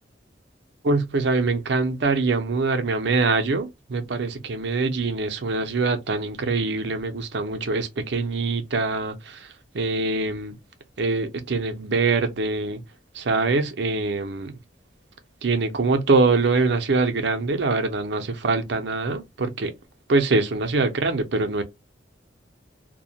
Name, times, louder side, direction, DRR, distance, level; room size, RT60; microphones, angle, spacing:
voice 1, 0.8-10.6 11.0-12.8 13.1-14.6 15.4-19.7 20.1-21.6, right 3 dB, 65° right, 0.6 m, -24 dB
2.3 x 2.1 x 2.7 m
head